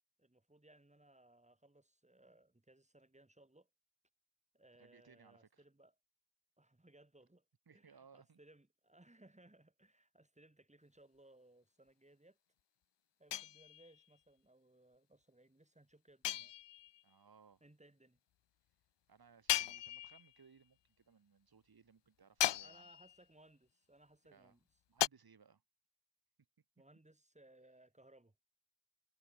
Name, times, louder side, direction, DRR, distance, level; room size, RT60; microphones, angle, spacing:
voice 1, 0.2-3.7 4.5-5.9 6.6-12.4 13.2-16.5 17.6-18.2 22.5-24.6 26.8-28.4, right 1 dB, 15° right, 5.8 m, -65 dB
voice 2, 4.8-5.6 7.7-8.4 17.0-17.6 19.1-22.9 24.3-24.6 24.9-25.6, right 6 dB, 60° right, 3.2 m, -65 dB
sound 1, 13.3-14.0 16.2-17.0 19.5-20.4 22.4-23.2 25.0-25.1, left 12 dB, 80° left, 0.6 m, -37 dB
wide cardioid pair, 80°, 42 cm